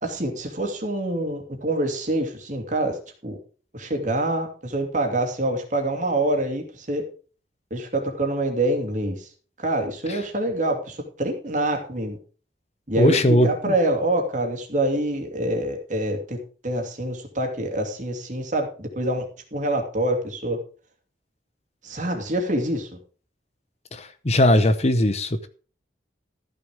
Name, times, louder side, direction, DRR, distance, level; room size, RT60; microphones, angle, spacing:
voice 1, 0.0-3.4 3.7-7.0 7.7-9.3 9.6-12.2 12.9-16.4 16.6-19.3 19.5-20.6 21.8-23.0, right 1 dB, 40° right, 3 dB, 2.7 m, -26 dB
voice 2, 13.0-13.5 23.9-25.5, left 1 dB, 35° left, 11 dB, 0.8 m, -19 dB
14.0 x 6.9 x 5.0 m, 0.39 s
head